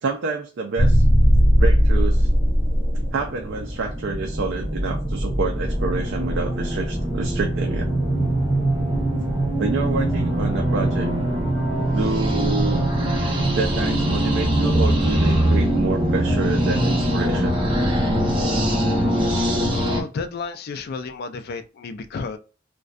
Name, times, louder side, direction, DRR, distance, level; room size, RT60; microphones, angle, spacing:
voice 1, 0.0-1.0 1.5-2.3 3.1-7.9 9.6-11.1 11.9-12.8 13.6-17.7, right 4 dB, 60° right, 0.4 m, -28 dB
sound 1, 0.8-20.0, equal, 25° right, 0.7 m, -21 dB
voice 2, 19.7-22.4, left 4 dB, 50° left, 0.3 m, -32 dB
2.5 x 2.1 x 2.3 m
head